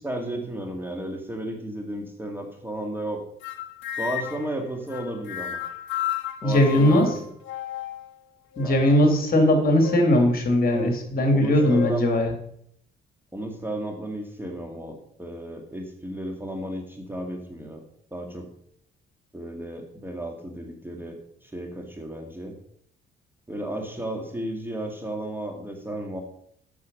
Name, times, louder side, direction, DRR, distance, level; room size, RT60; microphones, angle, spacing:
voice 1, 0.0-3.2 4.0-5.6 6.4-7.1 8.6-8.8 11.3-12.1 13.3-17.8 18.1-18.5 19.3-22.5 23.5-26.2, right 1 dB, 10° right, 3 dB, 2.0 m, -33 dB
sound 1, 3.4-4.5 4.9-8.1 8.5-9.2 9.8-10.2 10.7-10.9 11.6-11.9, left 10 dB, 75° left, 1.1 m, -33 dB
voice 2, 6.4-7.1 8.6-12.3, left 1 dB, 50° left, 3 dB, 2.9 m, -19 dB
8.5 x 6.5 x 6.4 m, 0.68 s
cardioid pair, 90°, 20 cm